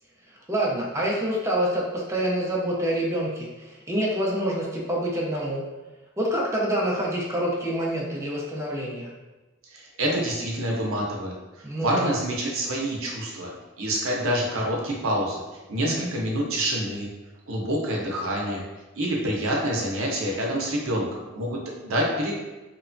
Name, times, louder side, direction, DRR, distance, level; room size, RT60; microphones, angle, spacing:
voice 1, 0.5-5.6 6.2-9.1 11.6-12.1 15.8-16.1, right 1 dB, 15° right, -4 dB, 0.5 m, -27 dB
voice 2, 9.7-11.3 11.8-13.5 13.8-15.4 15.7-17.1 17.5-18.6 19.0-22.3, right 1 dB, 75° right, -2 dB, 0.6 m, -27 dB
3.0 x 2.1 x 2.5 m, 1.1 s
head